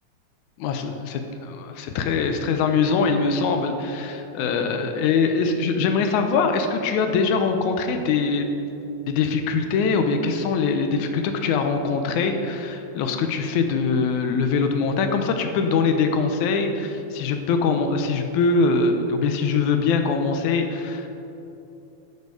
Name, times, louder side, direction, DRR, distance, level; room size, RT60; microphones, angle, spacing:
voice 1, 0.6-8.5 9.1-21.1, left 4 dB, 80° left, 6 dB, 2.1 m, -23 dB
11.5 x 6.9 x 4.8 m, 2.8 s
omnidirectional pair, 3.4 m